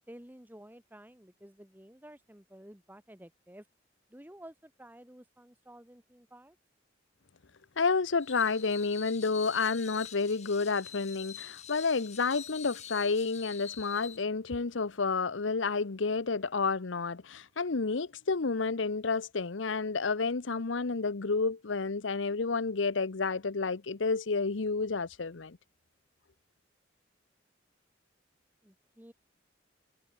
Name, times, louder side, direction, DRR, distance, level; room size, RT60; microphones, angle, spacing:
voice 1, 0.1-3.6 4.1-6.6 28.6-29.1, right 1 dB, 10° right, 2.1 m, -52 dB
voice 2, 7.8-25.6, left 4 dB, 90° left, 0.9 m, -30 dB
Screech, 8.2-14.2, left 9 dB, 35° left, 2.6 m, -46 dB
head